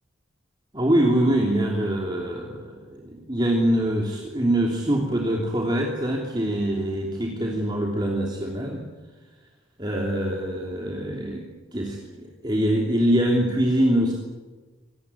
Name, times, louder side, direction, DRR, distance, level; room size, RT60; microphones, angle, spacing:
voice 1, 0.7-8.8 9.8-11.4 11.7-14.1, right 1 dB, 20° right, -1 dB, 3.2 m, -24 dB
25.0 x 20.0 x 9.8 m, 1.3 s
head